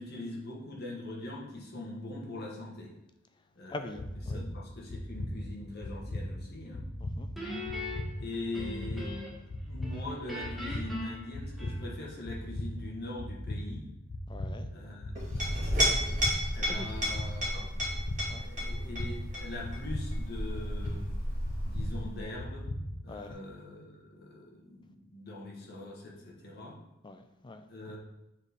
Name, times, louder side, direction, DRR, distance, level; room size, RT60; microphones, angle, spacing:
voice 1, 0.0-2.9 3.6-6.9 8.2-9.1 9.6-13.9 14.7-16.2 16.5-17.6 18.4-21.0 21.6-22.6 23.0-26.8 27.7-28.0, left 2 dB, 50° left, -2 dB, 1.3 m, -42 dB
voice 2, 3.7-4.5 7.0-7.3 14.3-14.7 16.6-16.9 18.3-18.5 23.1-23.4 27.0-27.6, left 2 dB, 20° left, 8 dB, 0.4 m, -43 dB
sound 1, 3.9-23.3, left 1 dB, 80° left, 0.8 m, -39 dB
Guitar, 7.4-9.5 9.8-12.1, left 2 dB, ahead, 1.3 m, -41 dB
Chink clink, 15.1-22.3, equal, 35° right, 2.1 m, -32 dB
7.2 x 4.1 x 3.5 m, 0.89 s
head